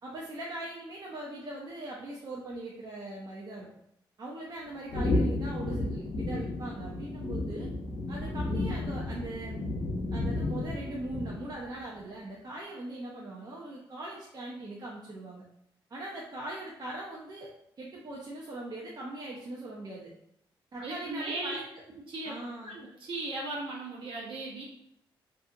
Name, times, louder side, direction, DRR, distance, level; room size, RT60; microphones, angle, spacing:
voice 1, 0.0-3.7 4.2-7.7 8.1-9.6 10.1-15.4 15.9-17.5 17.8-20.1 20.7-21.6 22.2-22.7, right 2 dB, 45° right, -3 dB, 0.6 m, -40 dB
sound 1, 4.9-11.7, left 2 dB, 70° left, 0.6 m, -32 dB
voice 2, 20.8-21.6 22.1-22.4 22.6-24.6, right 2 dB, 65° right, -3 dB, 1.0 m, -37 dB
2.6 x 2.3 x 2.7 m, 0.76 s
cardioid pair, 60°, 9 cm